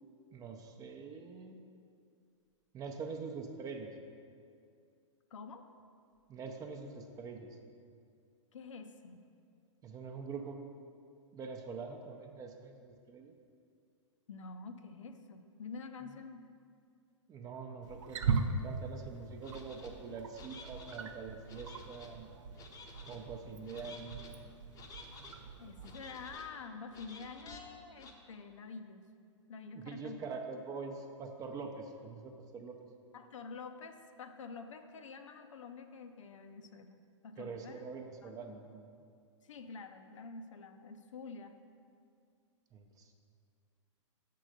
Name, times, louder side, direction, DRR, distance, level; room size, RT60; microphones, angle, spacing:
voice 1, 0.3-1.6 2.7-3.9 6.3-7.6 9.8-10.7 11.3-13.3 17.3-22.3 23.0-24.3 29.7-32.7 37.4-38.9 42.7-43.1, right 4 dB, 20° right, 4 dB, 0.6 m, -44 dB
voice 2, 5.3-5.7 8.5-9.3 14.3-16.4 25.6-29.1 29.5-30.3 33.1-37.0 37.2-37.9 38.2-38.4 39.4-41.6, left 4 dB, 75° left, 7 dB, 0.6 m, -48 dB
Wild animals, 17.8-26.3, right 5 dB, 70° right, 0.5 m, -40 dB
sound 1, 19.4-19.9 20.3-21.0 21.5-22.1 22.6-23.2 23.6-24.3 24.7-25.4 25.8-26.5 26.9-27.6 28.0-28.1, left 3 dB, 20° left, 0.7 m, -52 dB
6.4 x 3.8 x 6.3 m, 2.3 s
hypercardioid pair, 120°, 16 cm